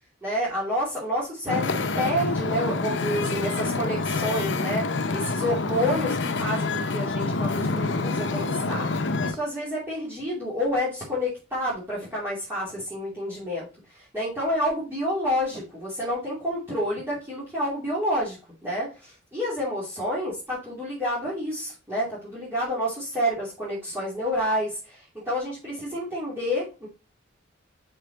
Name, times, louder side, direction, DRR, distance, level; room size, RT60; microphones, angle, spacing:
voice 1, 0.2-13.7 13.9-18.4 18.6-26.9, equal, 10° right, -8 dB, 2.7 m, -29 dB
Wind / Ocean, 1.5-9.4, left 3 dB, 65° left, 0.7 m, -27 dB
6.0 x 5.6 x 3.9 m, 0.31 s
head